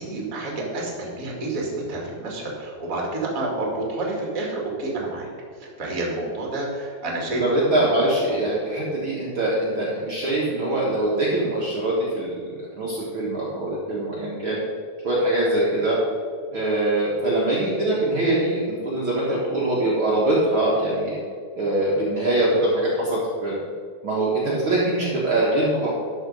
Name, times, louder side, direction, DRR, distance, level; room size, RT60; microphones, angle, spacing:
voice 1, 0.0-5.3 5.6-7.8 8.3-8.4, right 2 dB, 35° right, -2 dB, 1.3 m, -29 dB
voice 2, 7.4-14.6 15.0-16.0 16.5-21.2 21.5-23.6 24.0-25.9, right 1 dB, 70° right, -6 dB, 1.2 m, -23 dB
12.5 x 5.2 x 5.3 m, 2.1 s
omnidirectional pair, 4.8 m